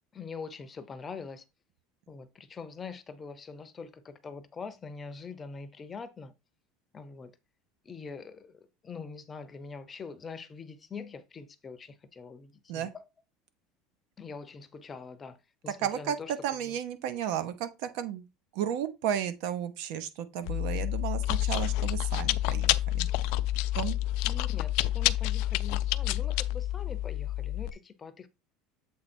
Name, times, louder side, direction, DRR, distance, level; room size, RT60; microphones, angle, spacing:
voice 1, 0.1-1.4 2.1-6.3 6.9-7.3 7.8-13.0 14.2-15.4 15.6-16.3 16.6-16.8 24.2-28.3, left 5 dB, 20° left, 0.7 m, -43 dB
voice 2, 15.8-16.2 16.4-18.2 18.5-23.1 23.7-24.0, right 9 dB, 65° right, 1.0 m, -33 dB
Chewing mastication, 20.5-27.7, left 15 dB, 65° left, 0.4 m, -29 dB
7.7 x 3.3 x 4.3 m
cardioid pair, 155°, 0 cm